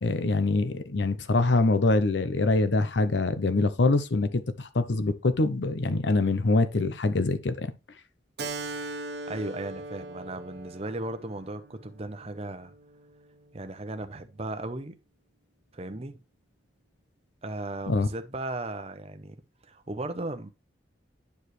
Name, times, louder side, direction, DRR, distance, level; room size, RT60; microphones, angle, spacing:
voice 1, 0.0-7.7 17.9-18.1, left 2 dB, 75° left, 0.7 m, -24 dB
Keyboard (musical), 8.4-13.5, right 2 dB, 60° right, 1.0 m, -40 dB
voice 2, 9.3-12.7 13.5-15.0 15.7-16.2 17.4-19.4 19.6-20.5, right 2 dB, 35° right, 0.7 m, -36 dB
9.5 x 4.8 x 3.2 m
head